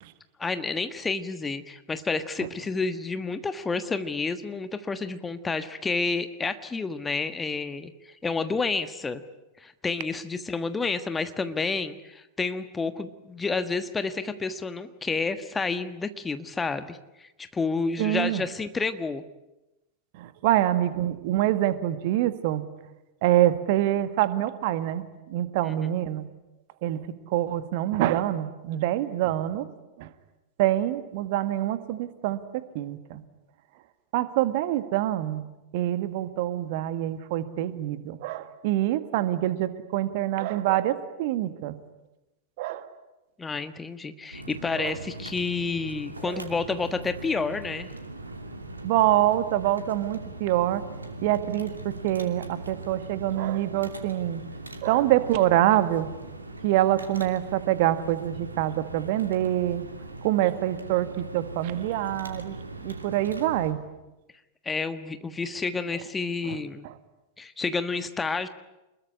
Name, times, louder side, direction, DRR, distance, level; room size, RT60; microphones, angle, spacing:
voice 1, 0.4-9.2 9.6-19.2 25.6-26.1 43.4-47.9 64.6-66.9 67.4-68.5, left 4 dB, 15° left, 10 dB, 1.4 m, -30 dB
voice 2, 18.0-18.4 20.2-22.6 23.2-25.0 25.3-26.3 26.8-29.7 30.0-30.1 30.6-32.4 32.7-33.2 34.1-35.4 35.7-41.8 42.6-42.9 44.8-45.0 46.2-46.4 48.8-50.8 51.2-54.4 54.8-56.1 56.6-59.9 60.2-62.6 62.8-63.8 66.4-66.6 66.8-66.9, right 13 dB, 50° right, 12 dB, 1.7 m, -25 dB
sound 1, 44.3-63.7, right 2 dB, 80° right, 2.7 m, -40 dB
27.0 x 21.5 x 9.8 m, 0.97 s
figure-of-eight pair, 90°, 0 cm